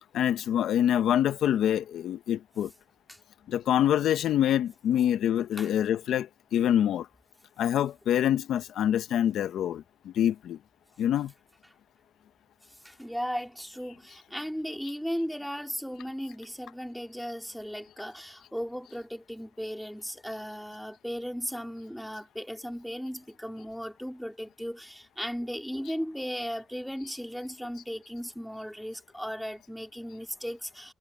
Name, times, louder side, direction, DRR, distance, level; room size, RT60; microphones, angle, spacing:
voice 1, 0.1-2.7 3.5-7.1 7.6-10.6 11.0-11.3, left 10 dB, 75° left, 1.0 m, -26 dB
voice 2, 12.8-30.9, equal, ahead, 2.7 m, -36 dB
cardioid pair, 90°, 0 cm